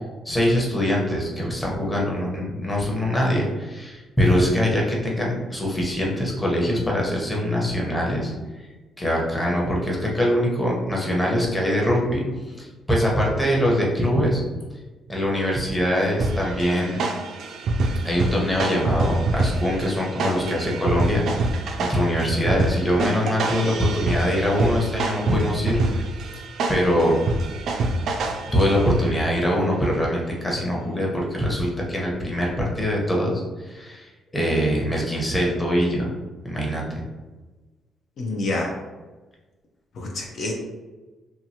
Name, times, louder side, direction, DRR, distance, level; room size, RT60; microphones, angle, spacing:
voice 1, 0.2-8.3 9.0-14.4 15.1-17.0 18.0-26.0 26.7-27.2 28.2-36.1 36.4-37.0, equal, 15° left, -3 dB, 0.8 m, -23 dB
sound 1, 16.2-29.4, right 2 dB, 70° right, 0.3 m, -26 dB
voice 2, 38.2-38.7 40.0-40.5, left 2 dB, 65° left, -1 dB, 0.5 m, -27 dB
2.8 x 2.4 x 2.8 m, 1.2 s
cardioid pair, 90°, 0 cm